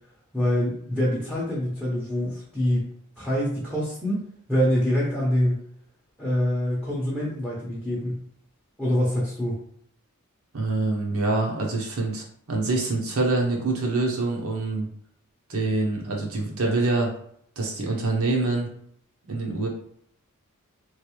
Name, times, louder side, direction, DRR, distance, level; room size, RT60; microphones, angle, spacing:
voice 1, 0.3-2.9 3.2-5.6 6.2-8.2 8.8-9.6, equal, 5° left, -6 dB, 0.7 m, -25 dB
voice 2, 10.5-14.9 15.5-17.1 17.6-18.7 19.3-19.7, right 2 dB, 70° right, -1 dB, 0.9 m, -25 dB
3.2 x 2.6 x 3.0 m, 0.66 s
head